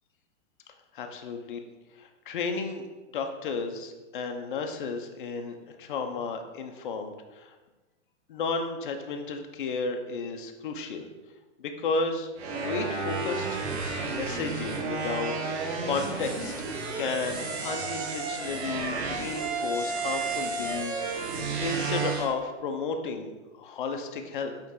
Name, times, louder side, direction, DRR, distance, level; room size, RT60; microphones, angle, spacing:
voice 1, 0.9-1.6 1.9-2.8 3.1-7.6 8.3-11.1 11.6-13.6 14.0-16.5 16.9-23.3 23.5-24.6, left 4 dB, 45° left, 5 dB, 0.7 m, -33 dB
sound 1, 12.4-22.3, right 4 dB, 60° right, 1.3 m, -32 dB
8.5 x 3.2 x 3.8 m, 1.2 s
hypercardioid pair, 170°, 37 cm